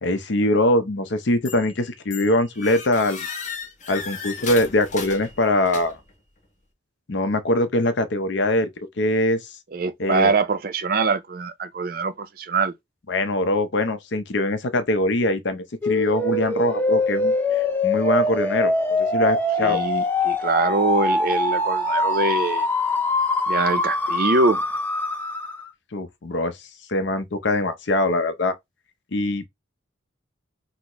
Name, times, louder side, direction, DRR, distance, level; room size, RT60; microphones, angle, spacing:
voice 1, 0.0-3.3 3.9-6.0 7.1-8.7 9.0-9.6 10.0-10.3 13.1-19.8 25.9-26.6 26.9-28.5 29.1-29.5, left 1 dB, 65° left, 0.6 m, -23 dB
sound 1, 1.5-1.8 2.1-6.1, left 5 dB, 40° left, 1.0 m, -35 dB
voice 2, 9.7-12.7 19.6-22.7 23.5-24.6, right 4 dB, 45° right, 0.4 m, -23 dB
sound 2, 15.8-25.7, left 2 dB, 10° left, 0.5 m, -23 dB
4.0 x 2.0 x 2.9 m
head